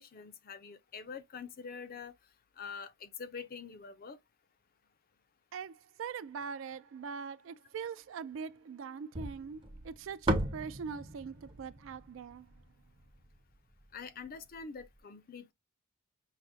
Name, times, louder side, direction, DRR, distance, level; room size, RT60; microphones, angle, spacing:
voice 1, 0.0-2.1 2.6-4.2 13.9-15.5, left 5 dB, 45° left, 0.4 m, -45 dB
voice 2, 5.5-12.5, right 6 dB, 65° right, 0.3 m, -42 dB
sound 1, 9.1-13.4, right 1 dB, 25° right, 0.6 m, -36 dB
5.7 x 2.1 x 2.6 m
head